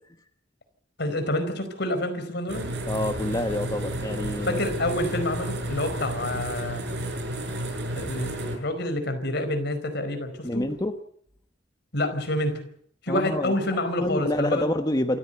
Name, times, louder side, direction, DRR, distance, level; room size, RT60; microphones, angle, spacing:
voice 1, 1.0-2.7 4.5-6.8 7.9-10.6 11.9-12.6 13.0-14.7, left 1 dB, 60° left, 8 dB, 4.8 m, -28 dB
sound 1, 2.5-8.6, right 1 dB, 65° right, 6.6 m, -31 dB
voice 2, 2.9-4.6 10.4-11.0 13.1-15.2, left 1 dB, 20° left, 7 dB, 1.1 m, -28 dB
27.5 x 14.5 x 8.0 m, 0.66 s
head